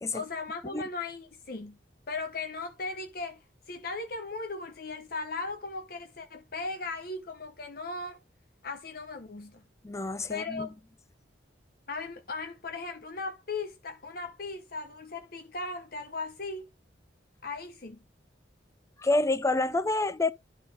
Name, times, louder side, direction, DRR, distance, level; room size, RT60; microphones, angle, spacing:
voice 1, 0.1-1.8 2.1-8.2 8.6-9.6 10.3-10.7 11.9-16.7 17.4-18.0, left 3 dB, 50° left, 0.9 m, -37 dB
voice 2, 9.8-10.7 19.0-20.3, left 2 dB, 15° left, 0.4 m, -28 dB
12.0 x 4.1 x 3.4 m
head